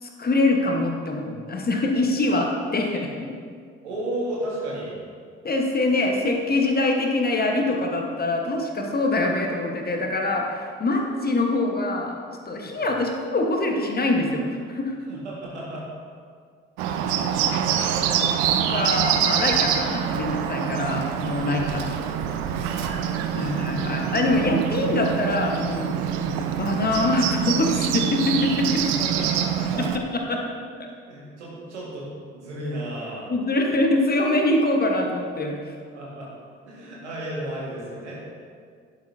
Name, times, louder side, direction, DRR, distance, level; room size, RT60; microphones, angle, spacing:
voice 1, 0.0-3.3 5.4-12.1 12.5-15.0 18.7-21.7 23.3-28.8 29.8-30.4 33.3-35.6, left 2 dB, 25° left, 1 dB, 1.3 m, -24 dB
voice 2, 3.8-5.0 12.8-12.9 15.1-15.9 16.9-18.4 21.5-21.7 22.6-23.5 29.0-29.9 31.1-33.3 35.9-36.3 36.6-38.2, right 1 dB, 80° right, -5 dB, 1.9 m, -34 dB
Bird, 16.8-30.0, right 9 dB, 60° right, 0.6 m, -25 dB
11.0 x 8.5 x 2.7 m, 2.1 s
figure-of-eight pair, 45°, 34 cm